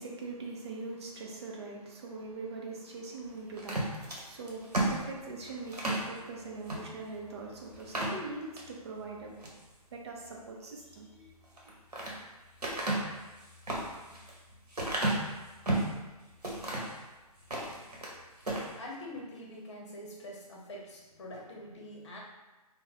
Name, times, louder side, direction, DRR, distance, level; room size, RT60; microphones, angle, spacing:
voice 1, 0.0-9.4 9.9-11.3, right 3 dB, 45° right, -1 dB, 0.6 m, -42 dB
sound 1, 3.6-6.1 6.6-6.8 7.2-7.3 7.8-8.7 9.2-9.6 11.4-12.2 12.6-16.0 16.4-17.0 17.4-18.1 18.4-18.7, right 1 dB, 80° right, 0.9 m, -33 dB
voice 2, 18.5-22.2, left 1 dB, 45° left, -2 dB, 0.8 m, -45 dB
2.6 x 2.1 x 3.8 m, 1.1 s
figure-of-eight pair, 135°, 20 cm